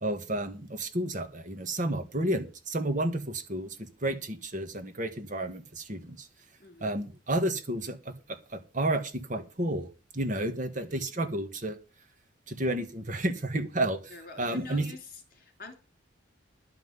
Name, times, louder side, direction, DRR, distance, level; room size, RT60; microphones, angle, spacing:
voice 1, 0.0-6.3 6.8-9.9 10.1-11.8 12.5-14.9, right 1 dB, 40° right, 8 dB, 1.6 m, -31 dB
voice 2, 6.6-7.0 10.8-11.2 14.1-15.7, left 3 dB, 50° left, 5 dB, 3.4 m, -46 dB
11.5 x 5.8 x 8.1 m, 0.32 s
head